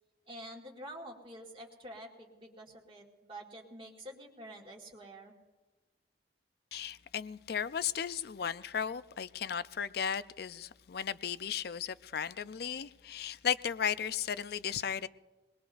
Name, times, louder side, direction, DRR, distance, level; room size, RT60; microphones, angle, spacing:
voice 1, 0.3-5.4, right 1 dB, 30° right, 1.8 m, -48 dB
voice 2, 6.7-15.1, left 8 dB, 55° left, 0.4 m, -35 dB
23.0 x 20.5 x 2.6 m
head